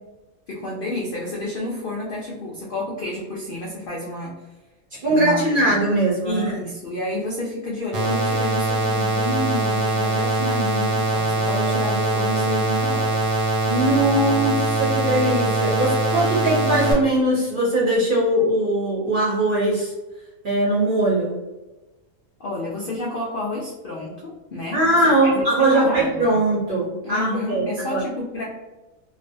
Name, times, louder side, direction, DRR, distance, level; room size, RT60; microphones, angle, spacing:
voice 1, 0.5-4.4 5.0-5.7 6.2-13.2 22.4-26.3 27.0-28.4, left 1 dB, 80° left, -4 dB, 0.4 m, -30 dB
voice 2, 4.9-6.6 13.6-19.9 20.4-21.4 24.7-28.0, right 1 dB, 50° right, -5 dB, 0.6 m, -20 dB
sound 1, 7.9-16.9, right 2 dB, 90° right, 1.2 m, -22 dB
2.5 x 2.0 x 2.5 m, 1.1 s
omnidirectional pair, 1.5 m